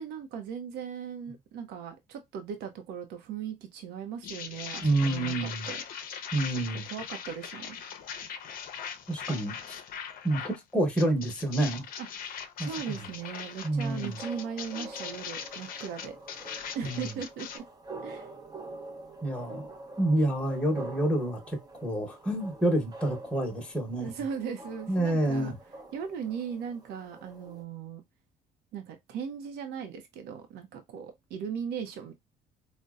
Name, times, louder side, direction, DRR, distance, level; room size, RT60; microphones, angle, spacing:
voice 1, 0.0-5.8 6.9-7.8 12.0-12.1 12.6-16.2 16.7-17.7 18.0-18.3 24.0-25.5 25.9-28.0 28.7-32.1, right 7 dB, 85° right, 0.6 m, -38 dB
sound 1, 4.2-10.6 11.0-17.6, left 7 dB, 60° left, 0.5 m, -40 dB
voice 2, 4.8-5.7 6.3-6.8 9.1-9.8 10.2-11.9 12.6-13.0 13.6-14.2 16.8-17.1 19.2-19.7 20.0-24.1 24.9-25.5, right 1 dB, 5° left, 0.9 m, -28 dB
sound 2, 12.6-27.6, right 2 dB, 25° right, 0.6 m, -46 dB
4.0 x 2.1 x 2.3 m
cardioid pair, 110°, 17 cm